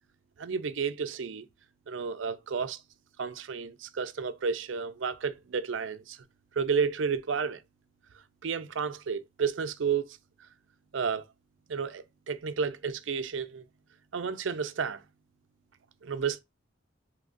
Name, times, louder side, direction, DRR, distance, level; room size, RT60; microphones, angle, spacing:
voice 1, 0.4-1.5 1.9-2.8 3.2-6.2 6.5-7.6 8.4-10.2 10.9-11.3 11.7-13.6 14.1-15.0 16.0-16.4, right 6 dB, 80° right, 0.5 m, -31 dB
6.1 x 3.0 x 2.5 m
head